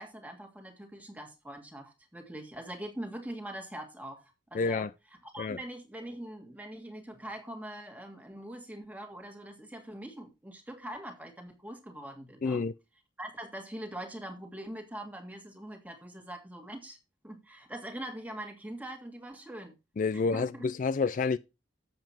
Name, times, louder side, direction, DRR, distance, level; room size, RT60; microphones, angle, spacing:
voice 1, 0.0-4.9 5.2-12.6 13.2-17.0 17.2-19.8 20.1-20.7, right 1 dB, 10° right, 1.9 m, -43 dB
voice 2, 4.5-4.9 5.4-5.6 12.4-12.7 20.0-21.4, left 4 dB, 45° left, 0.4 m, -29 dB
7.8 x 7.3 x 4.3 m
head